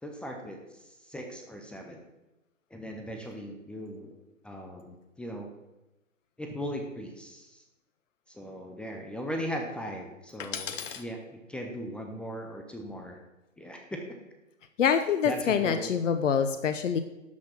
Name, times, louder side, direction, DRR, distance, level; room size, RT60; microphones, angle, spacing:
voice 1, 0.0-2.0 2.7-4.2 4.4-5.5 6.4-7.6 8.3-13.2 13.6-14.0 15.2-15.9, equal, 5° left, 2 dB, 0.5 m, -38 dB
voice 2, 10.4-11.0 14.8-17.0, left 7 dB, 65° left, 9 dB, 0.9 m, -26 dB
12.0 x 5.8 x 6.1 m, 1.0 s
hypercardioid pair, 130°, 40 cm